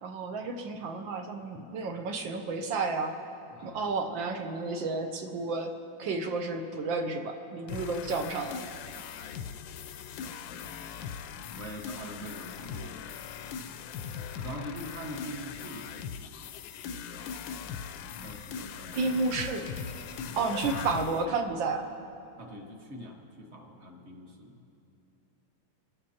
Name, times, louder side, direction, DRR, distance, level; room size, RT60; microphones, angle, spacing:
voice 1, 0.0-3.1 3.6-5.7 6.0-8.6 18.9-19.7 20.3-21.8, right 3 dB, 70° right, 5 dB, 1.4 m, -31 dB
voice 2, 3.5-3.8 10.5-11.2 11.5-13.1 14.3-16.0 18.2-19.1 20.0-20.2 22.4-24.6, equal, 35° right, 1 dB, 1.5 m, -43 dB
sound 1, 7.7-21.2, left 7 dB, 75° left, 1.2 m, -40 dB
24.5 x 13.0 x 2.9 m, 2.7 s
omnidirectional pair, 2.4 m